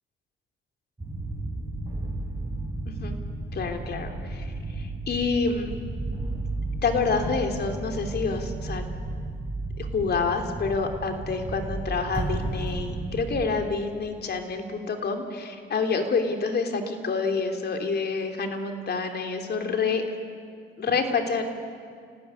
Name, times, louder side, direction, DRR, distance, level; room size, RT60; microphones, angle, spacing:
sound 1, 1.0-13.5, right 2 dB, 20° right, 6.8 m, -33 dB
voice 1, 3.5-5.7 6.8-8.8 9.8-20.0 20.8-21.4, left 4 dB, 55° left, 5 dB, 3.3 m, -28 dB
28.5 x 18.0 x 9.8 m, 2.2 s
cardioid pair, 90°, 20 cm